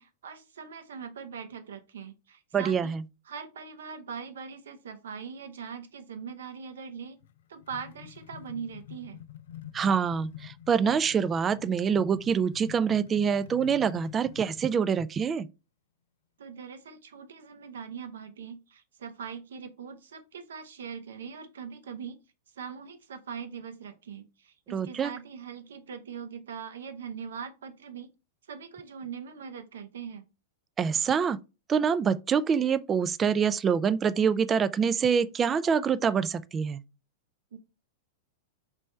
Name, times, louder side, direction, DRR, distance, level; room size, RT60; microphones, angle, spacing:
voice 1, 0.0-3.0 3.3-7.2 7.5-9.2 16.4-22.2 22.5-28.1 28.5-30.2 37.5-37.6, right 6 dB, 75° right, 0.7 m, -41 dB
voice 2, 2.5-3.0 9.7-15.5 24.7-25.1 30.8-31.4 31.7-36.8, right 6 dB, 25° right, 0.3 m, -25 dB
sound 1, 7.2-14.7, left 12 dB, 70° left, 0.3 m, -47 dB
3.3 x 3.2 x 4.2 m
hypercardioid pair, 100°, 0 cm